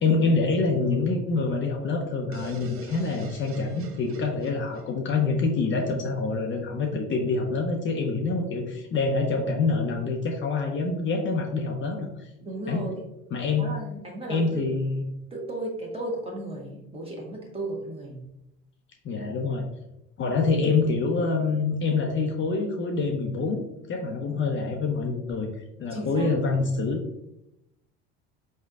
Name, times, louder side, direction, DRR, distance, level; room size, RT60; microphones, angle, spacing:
voice 1, 0.0-12.1 12.7-12.8 13.3-13.7 14.3-15.0 19.0-19.7 20.2-23.6 23.9-25.5 25.8-27.0, left 4 dB, 40° left, 2 dB, 0.6 m, -26 dB
sound 1, 2.3-6.1, right 5 dB, 45° right, 0.6 m, -44 dB
voice 2, 12.4-13.0 13.6-14.7 15.3-18.3 25.8-26.3, right 1 dB, 15° right, -1 dB, 1.2 m, -34 dB
4.4 x 3.2 x 2.4 m, 0.86 s
supercardioid pair, 85°, 32 cm